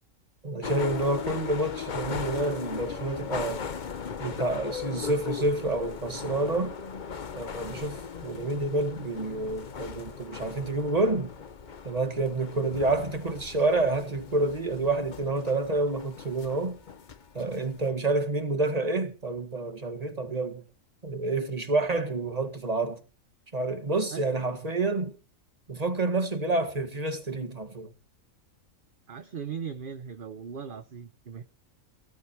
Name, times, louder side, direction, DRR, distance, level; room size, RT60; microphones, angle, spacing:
voice 1, 0.4-3.6 4.2-6.7 7.3-11.3 11.8-16.8 17.3-20.6 21.0-23.0 23.5-25.1 25.7-27.9, right 2 dB, 30° right, 1.8 m, -28 dB
sound 1, 0.6-17.9, left 6 dB, 40° left, 0.9 m, -38 dB
voice 2, 29.1-31.4, right 7 dB, 45° right, 1.0 m, -38 dB
19.0 x 12.0 x 4.6 m
omnidirectional pair, 1.4 m